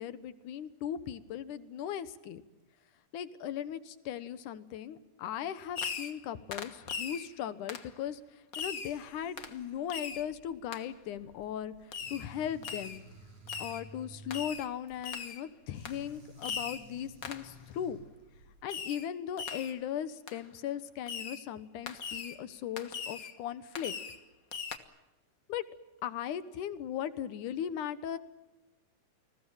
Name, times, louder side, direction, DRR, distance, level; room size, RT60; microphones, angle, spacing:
voice 1, 0.0-2.4 3.1-8.2 8.6-11.7 12.1-13.0 13.6-18.0 18.6-23.9 25.5-25.6 26.0-28.2, left 9 dB, 85° left, 14 dB, 2.7 m, -38 dB
Fireworks, 5.7-6.2 6.5-7.3 7.7-7.9 8.5-9.0 9.4-9.6 9.9-10.3 10.7-10.8 11.9-12.3 12.6-13.0 13.5-13.8 14.3-14.7 15.0-15.4 15.8-16.0 16.4-16.9 17.2-17.5 18.7-19.1 19.4-19.8 20.3-20.4 21.1-21.4 21.9-22.4 22.8-23.3 23.7-24.2 24.5-24.8, left 6 dB, 45° left, 1.2 m, -39 dB
sound 1, 8.6-18.7, right 1 dB, 85° right, 6.6 m, -54 dB
29.5 x 20.5 x 7.3 m, 1.1 s
omnidirectional pair, 3.5 m